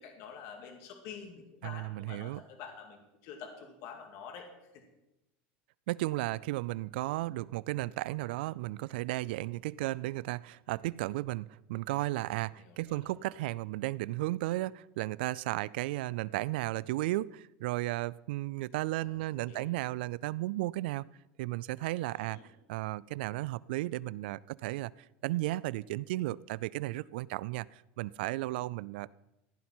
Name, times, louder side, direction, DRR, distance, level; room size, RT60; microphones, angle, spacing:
voice 1, 0.0-4.5 4.7-4.8 12.6-13.1 19.0-19.2 19.4-19.7 22.1-22.5, left 6 dB, 60° left, 3 dB, 2.2 m, -48 dB
voice 2, 1.6-2.4 5.9-21.1 21.4-22.4 22.7-24.9 25.2-29.1, right 18 dB, 85° right, 22 dB, 0.3 m, -34 dB
15.0 x 10.5 x 4.4 m, 0.93 s
supercardioid pair, 145°, 5 cm